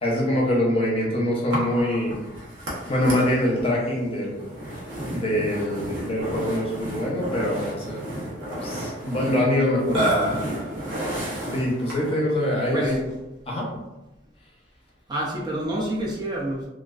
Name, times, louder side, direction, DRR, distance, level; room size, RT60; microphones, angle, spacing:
voice 1, 0.0-2.2 2.9-4.5 5.1-8.0 8.6-10.4 11.5-13.0 13.5-13.7, left 1 dB, 30° left, -3 dB, 0.6 m, -24 dB
Burping eructation, 1.5-12.2, right 1 dB, 90° right, 0.8 m, -31 dB
voice 2, 12.1-13.0 15.1-16.7, right 1 dB, 25° right, -4 dB, 0.4 m, -29 dB
2.3 x 2.3 x 2.3 m, 1.0 s
head